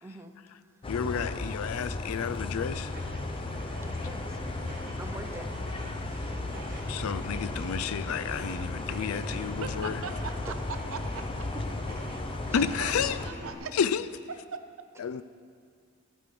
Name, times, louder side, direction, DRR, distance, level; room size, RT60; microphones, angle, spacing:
voice 1, 0.0-0.8 3.8-4.4 4.9-5.5 10.5-10.6 12.5-12.7, right 2 dB, 10° right, 4 dB, 0.7 m, -44 dB
sound 1, 0.8-13.3, left 2 dB, 25° left, 0.5 m, -35 dB
voice 2, 0.9-2.9 6.9-9.9 12.5-13.2 13.7-14.0 15.0-15.2, left 7 dB, 85° left, 14 dB, 0.4 m, -31 dB
sound 2, 2.6-13.5, right 1 dB, 40° right, 1.6 m, -44 dB
voice 3, 9.6-10.5 10.9-11.3 12.8-12.9 13.2-13.7 14.5-14.6, right 5 dB, 70° right, 8 dB, 0.7 m, -39 dB
14.5 x 5.5 x 6.7 m, 2.1 s
head